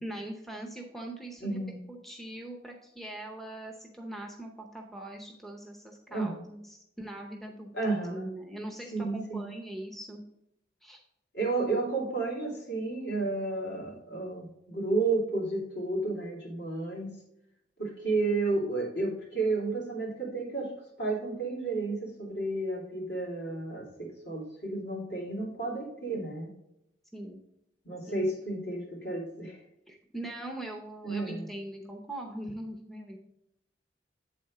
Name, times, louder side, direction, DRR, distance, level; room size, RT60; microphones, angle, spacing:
voice 1, 0.0-1.6 1.9-7.7 8.1-10.2 10.8-11.0 27.1-27.4 28.1-28.3 29.9-33.2, right 1 dB, ahead, 0 dB, 0.7 m, -41 dB
voice 2, 1.4-1.8 6.1-6.4 7.7-8.3 8.9-9.5 11.3-17.1 17.8-20.7 21.0-26.5 27.8-29.6 31.0-31.5, right 3 dB, 65° left, -3 dB, 2.5 m, -32 dB
8.2 x 4.2 x 4.8 m, 0.81 s
head